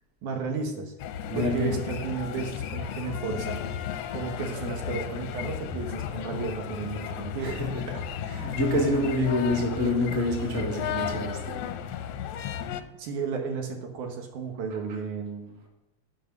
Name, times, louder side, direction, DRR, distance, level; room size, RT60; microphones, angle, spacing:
voice 1, 0.2-0.9 1.3-3.6 4.1-7.6 13.0-15.6, right 5 dB, 90° right, 4 dB, 2.7 m, -33 dB
sound 1, 1.0-12.8, left 9 dB, 75° left, 1.6 m, -34 dB
voice 2, 1.3-1.7 7.4-11.6 14.7-14.8, left 1 dB, 30° right, 0 dB, 1.6 m, -27 dB
11.0 x 5.4 x 6.0 m, 0.95 s
omnidirectional pair, 3.4 m